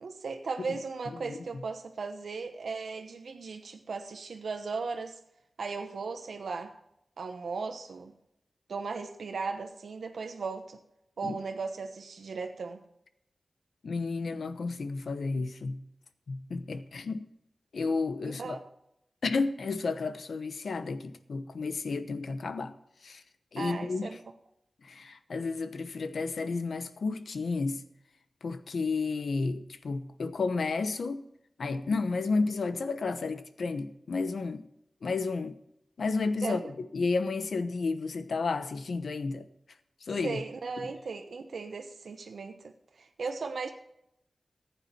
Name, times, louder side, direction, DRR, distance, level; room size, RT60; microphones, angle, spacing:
voice 1, 0.0-5.2 5.6-6.7 7.2-8.1 8.7-10.8 11.2-12.8 18.2-18.6 23.6-24.2 36.4-36.7 40.2-43.7, right 4 dB, 90° right, 1.0 m, -37 dB
voice 2, 13.8-15.8 16.3-17.2 17.7-18.6 19.2-22.7 23.0-23.2 23.5-24.1 24.8-27.8 28.4-31.2 31.6-34.6 35.0-35.5 36.0-39.5 40.0-40.4, left 4 dB, 75° left, 1.0 m, -32 dB
15.0 x 8.9 x 4.3 m
wide cardioid pair, 125°, 0 cm